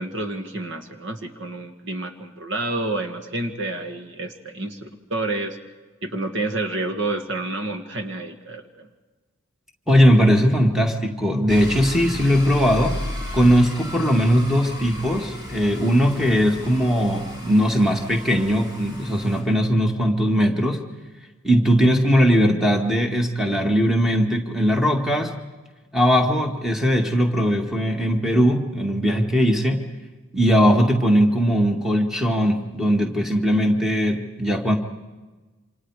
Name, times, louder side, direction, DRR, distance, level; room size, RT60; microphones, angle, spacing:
voice 1, 0.0-5.6 6.0-8.9, right 2 dB, 60° right, 6 dB, 1.9 m, -29 dB
voice 2, 9.9-13.0 13.3-20.8 21.4-25.3 25.9-29.8 30.3-34.8, equal, ahead, 2 dB, 2.0 m, -19 dB
sound 1, 11.5-19.4, left 1 dB, 20° right, 6.9 m, -34 dB
28.5 x 26.5 x 4.9 m, 1.2 s
head